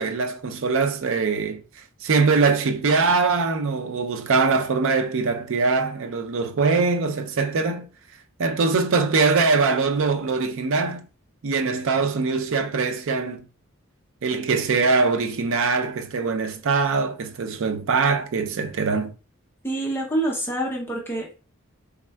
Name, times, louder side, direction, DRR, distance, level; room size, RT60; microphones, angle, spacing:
voice 1, 0.0-7.9 8.4-11.1 11.4-13.4 14.2-19.1, right 4 dB, 65° right, 0.5 m, -22 dB
voice 2, 19.6-21.4, right 1 dB, 10° left, 0.5 m, -26 dB
4.2 x 3.5 x 2.2 m
head